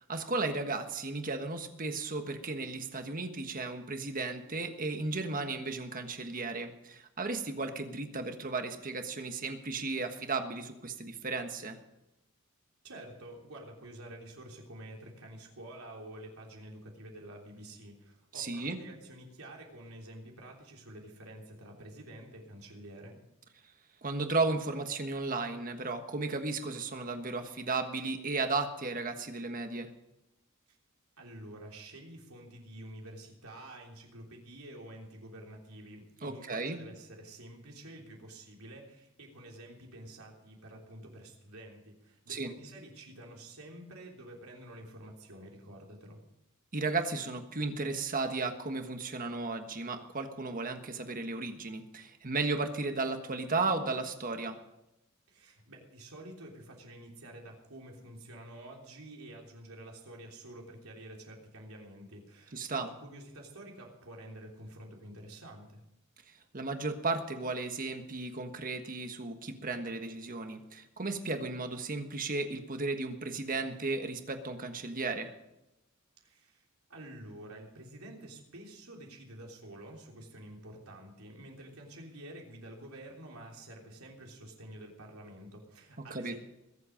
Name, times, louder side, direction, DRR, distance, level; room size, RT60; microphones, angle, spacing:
voice 1, 0.1-11.8 18.3-18.8 24.0-29.9 36.2-36.8 42.3-42.5 46.7-54.6 62.5-62.9 66.5-75.3 86.1-86.3, right 3 dB, 40° right, 6 dB, 1.4 m, -34 dB
voice 2, 12.8-23.2 31.2-46.2 55.3-65.8 76.2-76.6 76.9-86.4, right 1 dB, 80° right, 0 dB, 3.4 m, -49 dB
21.5 x 8.0 x 5.1 m, 0.90 s
head